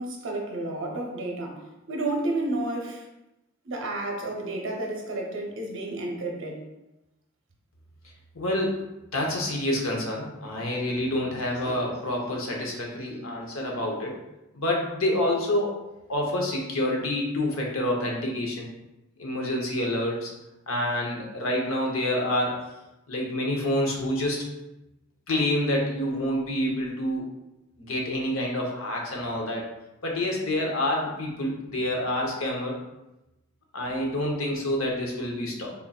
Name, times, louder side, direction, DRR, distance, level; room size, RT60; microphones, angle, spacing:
voice 1, 0.0-3.0 3.6-6.6, right 2 dB, 65° right, 1 dB, 0.8 m, -31 dB
voice 2, 8.3-8.8 9.1-14.2 14.5-15.7 16.1-18.7 19.2-20.3 20.7-22.6 23.1-24.5 25.3-27.3 27.8-29.7 30.0-32.8 33.7-35.7, left 1 dB, 70° left, -1 dB, 0.9 m, -27 dB
4.1 x 3.7 x 2.3 m, 0.95 s
head